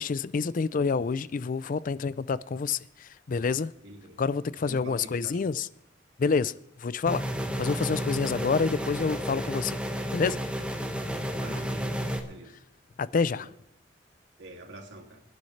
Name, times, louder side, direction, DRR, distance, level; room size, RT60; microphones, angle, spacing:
voice 1, 0.0-3.7 4.2-5.7 6.2-6.5 6.8-7.3 7.6-9.8 10.1-10.4 13.0-13.5, left 5 dB, 45° left, 0.4 m, -28 dB
voice 2, 3.8-4.2 4.6-5.6 11.4-12.6 13.2-13.5 14.4-15.2, right 1 dB, 75° right, 2.5 m, -46 dB
sound 1, 7.1-12.2, equal, 5° right, 1.3 m, -32 dB
26.5 x 10.5 x 3.2 m
head